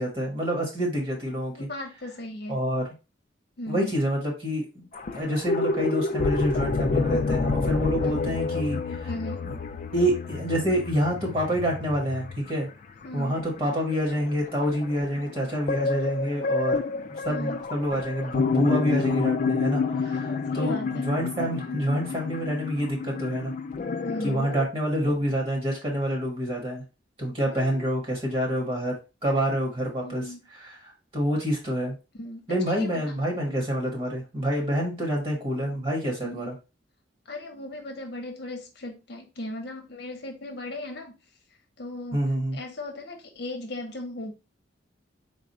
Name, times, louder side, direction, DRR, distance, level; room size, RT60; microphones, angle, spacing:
voice 1, 0.0-1.7 2.5-2.9 3.7-4.9 5.1-9.1 9.5-9.6 9.9-12.7 13.1-23.5 24.2-26.8 27.2-28.9 29.2-30.2 30.5-31.9 32.5-36.5 42.1-42.6, equal, 30° right, -1 dB, 1.3 m, -27 dB
voice 2, 1.5-2.6 3.6-3.9 8.0-8.4 9.0-9.5 13.0-13.4 17.2-17.7 20.1-21.1 24.0-24.4 27.5-27.8 30.0-30.4 32.2-33.3 36.2-36.6 37.3-41.1 41.8-42.2 42.5-44.3, left 1 dB, 55° left, 3 dB, 0.9 m, -37 dB
sound 1, 4.9-12.5 13.0-13.1 13.3-24.7, left 4 dB, 40° left, 0.3 m, -29 dB
4.0 x 2.4 x 4.1 m, 0.28 s
head